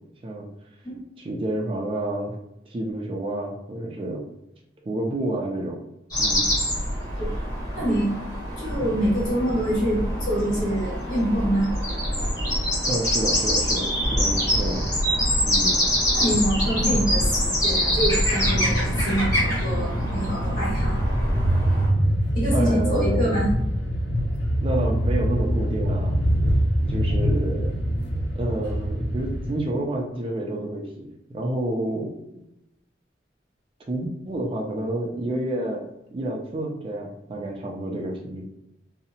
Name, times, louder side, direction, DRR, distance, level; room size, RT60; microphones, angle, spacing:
voice 1, 1.2-2.4 2.7-4.3 4.9-5.8 6.2-6.5 12.9-14.9 15.4-15.8 22.5-23.5 24.6-26.2 26.9-27.8 28.3-32.1 33.9-38.5, right 1 dB, 30° right, 0 dB, 0.3 m, -29 dB
sound 1, 6.1-21.9, equal, 20° left, 1.3 m, -25 dB
voice 2, 7.7-8.1 8.6-11.7 16.1-21.0 22.3-23.5, equal, 50° left, -6 dB, 1.3 m, -25 dB
sound 2, 18.3-29.6, equal, 80° left, 0.7 m, -24 dB
2.7 x 2.0 x 2.7 m, 0.85 s
head